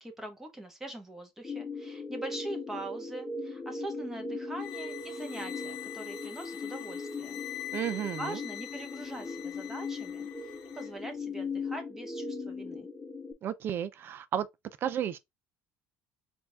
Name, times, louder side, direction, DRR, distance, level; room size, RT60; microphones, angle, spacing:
voice 1, 0.0-7.4 7.8-10.3 10.7-12.9, right 1 dB, 5° right, 1.3 m, -42 dB
sound 1, 1.4-13.3, left 3 dB, 15° left, 1.2 m, -39 dB
sound 2, 4.6-10.9, left 14 dB, 85° left, 0.9 m, -44 dB
voice 2, 7.7-8.4 13.4-14.5 14.8-15.2, right 9 dB, 45° right, 0.5 m, -32 dB
4.5 x 2.7 x 3.4 m
cardioid pair, 135°, 5 cm